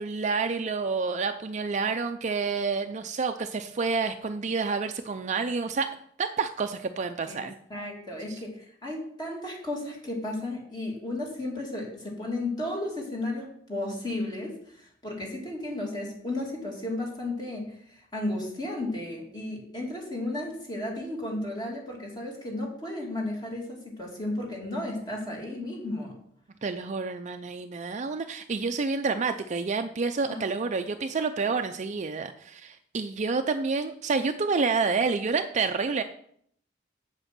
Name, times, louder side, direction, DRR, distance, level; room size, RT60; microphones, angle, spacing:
voice 1, 0.0-5.9 6.2-7.6 8.3-8.4 26.6-36.0, right 4 dB, 40° right, 7 dB, 0.5 m, -29 dB
voice 2, 7.7-26.2 30.3-30.4, left 1 dB, 25° left, -2 dB, 2.5 m, -34 dB
8.0 x 7.4 x 6.0 m, 0.66 s
head